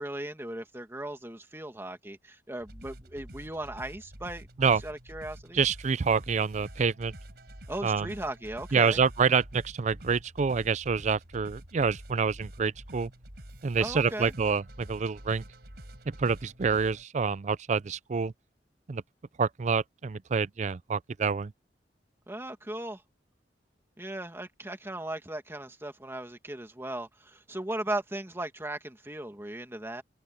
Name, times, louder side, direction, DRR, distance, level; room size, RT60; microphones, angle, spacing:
voice 1, 0.0-4.5 4.8-5.6 7.7-9.0 13.8-14.3 22.3-23.0 24.0-30.0, right 1 dB, 15° right, 2.1 m, -37 dB
sound 1, 2.6-17.0, right 1 dB, 65° right, 5.3 m, -47 dB
voice 2, 5.5-7.1 7.8-8.1 8.7-13.1 13.6-15.4 16.1-18.3 18.9-19.0 19.4-21.5, right 5 dB, 40° right, 0.4 m, -27 dB
head